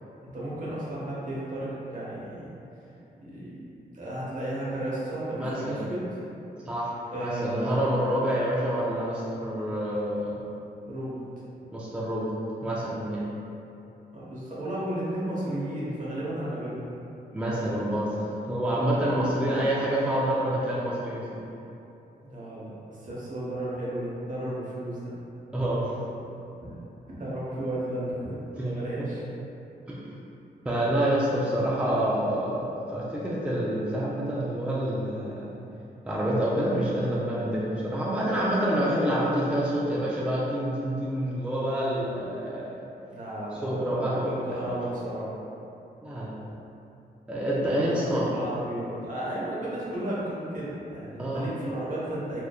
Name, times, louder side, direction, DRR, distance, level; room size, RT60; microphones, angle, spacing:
voice 1, 0.2-2.5 3.2-3.6 3.9-6.1 7.1-7.8 10.8-11.2 14.1-16.8 22.2-25.1 26.6-26.7 27.1-29.2 43.0-45.3 47.7-52.4, right 1 dB, 50° right, -8 dB, 0.9 m, -33 dB
voice 2, 5.3-5.9 6.6-6.9 7.2-10.4 11.7-12.3 12.6-13.3 17.3-21.4 25.5-26.0 28.6-29.1 29.9-30.1 30.7-35.5 36.1-42.8 43.6-44.7 46.0-46.4 47.3-48.3 51.2-51.5, right 1 dB, 5° right, -7 dB, 0.3 m, -27 dB
2.9 x 2.1 x 2.3 m, 2.8 s
cardioid pair, 70°, 17 cm